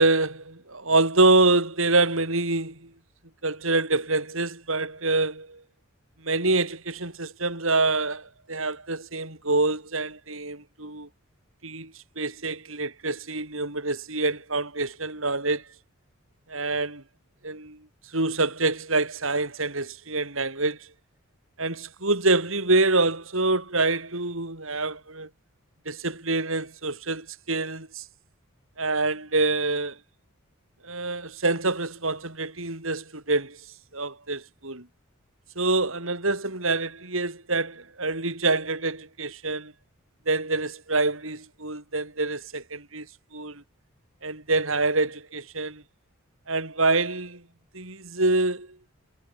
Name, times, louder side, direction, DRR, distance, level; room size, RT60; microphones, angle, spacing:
voice 1, 0.0-2.9 3.4-5.6 6.2-11.1 11.6-15.7 16.5-17.0 17.4-17.8 18.1-20.9 21.6-25.3 25.9-28.0 28.8-30.0 30.8-33.6 33.9-34.9 35.6-39.7 40.3-43.1 43.3-43.6 44.2-45.8 46.5-47.4 47.7-48.7, right 2 dB, 70° right, 6.3 m, -26 dB
head